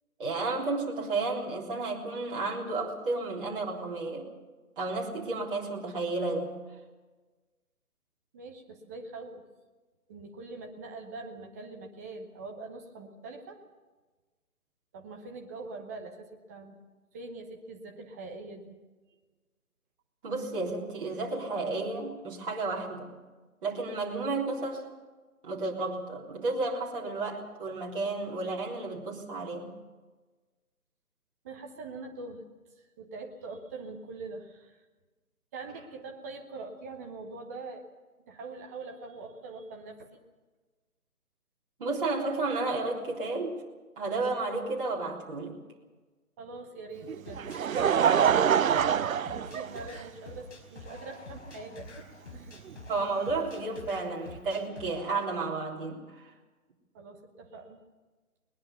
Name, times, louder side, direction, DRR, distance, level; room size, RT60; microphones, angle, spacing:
voice 1, 0.2-4.3 4.8-6.6 20.2-23.1 23.6-24.9 25.4-29.7 41.8-43.6 44.0-45.6 52.9-56.3, right 3 dB, 35° right, -3 dB, 3.7 m, -32 dB
voice 2, 8.3-9.4 10.1-13.6 14.9-16.8 17.1-18.8 31.4-32.4 32.8-34.8 35.5-37.8 38.3-40.2 46.4-52.6 56.9-57.8, right 3 dB, 10° right, 3 dB, 0.9 m, -43 dB
Laughter, 47.1-50.3 51.1-51.2 52.7-52.8, right 8 dB, 65° right, 0.6 m, -25 dB
sound 1, 47.2-55.2, left 2 dB, 50° left, 4.7 m, -47 dB
20.5 x 20.0 x 6.9 m, 1.3 s
figure-of-eight pair, 150°, 43 cm